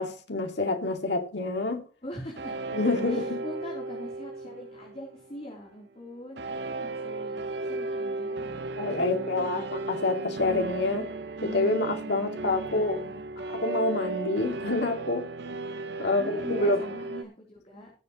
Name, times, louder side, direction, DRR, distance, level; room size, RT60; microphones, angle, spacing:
voice 1, 0.0-1.8 2.7-3.4 8.8-11.1 11.4-13.0 13.6-15.3 16.0-16.8, left 2 dB, 65° left, 2.2 m, -27 dB
voice 2, 2.0-2.6 3.1-8.6 9.1-9.6 12.7-13.2 16.0-17.9, left 1 dB, 35° left, 3.4 m, -43 dB
sound 1, 2.4-5.5 6.4-17.2, right 3 dB, 65° right, 0.8 m, -35 dB
19.0 x 7.6 x 3.1 m
head